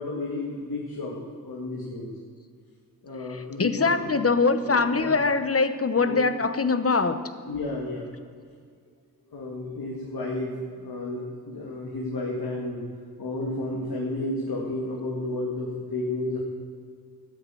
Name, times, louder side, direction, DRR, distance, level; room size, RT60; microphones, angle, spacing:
voice 1, 0.0-2.1 3.0-4.1 4.5-5.1 5.9-6.3 7.4-8.1 9.3-12.9 13.2-16.4, left 2 dB, 70° left, -3 dB, 2.2 m, -32 dB
voice 2, 3.6-7.2, left 4 dB, 35° left, 11 dB, 1.0 m, -23 dB
13.5 x 9.2 x 7.7 m, 2.1 s
cardioid pair, 50°, 38 cm